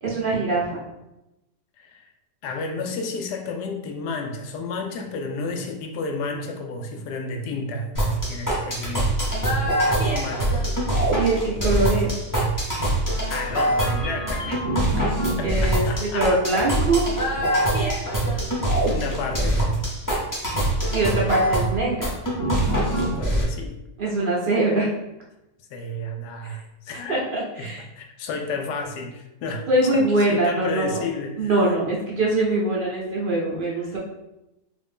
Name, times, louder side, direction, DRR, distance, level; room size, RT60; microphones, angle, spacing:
voice 1, 0.0-0.8 11.1-12.1 15.0-17.1 20.9-22.1 24.0-24.9 27.1-27.8 29.7-31.0 31.4-34.0, right 2 dB, 55° right, -5 dB, 0.5 m, -23 dB
voice 2, 1.8-2.1 2.4-9.4 9.9-10.7 13.3-14.6 15.4-16.3 17.8-18.0 18.9-19.6 22.8-23.8 25.7-27.2 27.6-31.7 33.8-34.0, left 3 dB, 80° left, 3 dB, 1.1 m, -32 dB
sound 1, 7.9-23.4, right 1 dB, 20° left, 0.5 m, -23 dB
3.0 x 2.6 x 3.4 m, 0.92 s
omnidirectional pair, 1.8 m